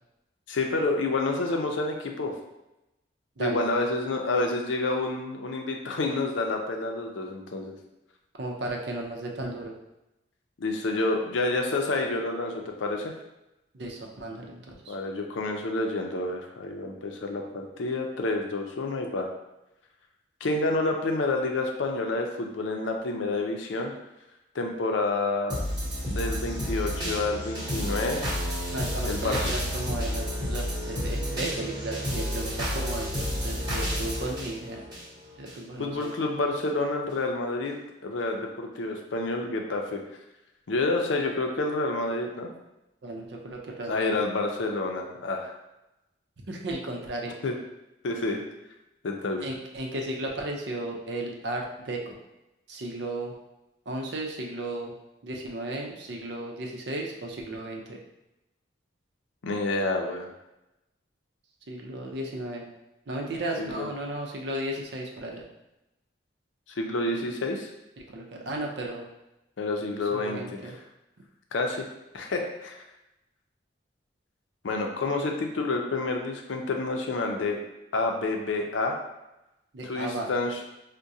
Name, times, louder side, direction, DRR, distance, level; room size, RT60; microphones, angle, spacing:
voice 1, 0.5-2.3 3.4-7.8 10.6-13.1 14.9-19.3 20.4-23.9 24.5-25.6 26.1-28.3 29.0-29.5 35.8-37.7 38.0-40.0 40.7-42.5 43.9-45.5 47.4-47.5 48.0-48.4 49.0-49.5 59.4-60.3 63.6-63.9 66.7-67.7 69.6-70.7 71.5-71.9 72.1-72.7 74.6-77.6 77.9-79.0 79.8-80.6, left 2 dB, 85° left, 2 dB, 0.5 m, -29 dB
voice 2, 8.4-9.7 13.7-15.0 28.7-34.8 35.4-36.1 43.0-44.1 46.5-47.3 49.4-52.2 52.7-53.3 53.9-54.9 55.2-58.0 61.7-62.7 63.1-65.4 68.0-69.1 70.1-70.7 79.7-80.3, right 1 dB, 65° right, 0 dB, 0.6 m, -35 dB
sound 1, 25.5-35.5 36.0-36.1, equal, 20° right, 0.9 m, -31 dB
4.7 x 2.1 x 2.7 m, 0.93 s
head